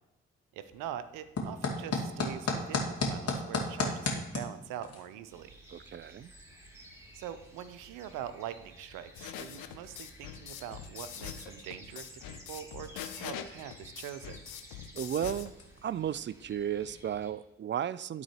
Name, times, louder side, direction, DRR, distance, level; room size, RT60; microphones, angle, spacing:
voice 1, 0.5-5.5 7.1-14.4, right 10 dB, 75° right, 12 dB, 0.7 m, -43 dB
sound 1, 0.6-16.9, left 3 dB, 50° left, 2.2 m, -39 dB
sound 2, 5.3-17.3, equal, 10° right, 2.9 m, -54 dB
voice 2, 5.7-6.3 14.9-15.5 15.8-18.2, right 9 dB, 35° right, 18 dB, 0.4 m, -34 dB
sound 3, 9.1-15.5, left 11 dB, 75° left, 0.7 m, -43 dB
11.5 x 4.0 x 4.4 m, 0.94 s
hypercardioid pair, 40°, 32 cm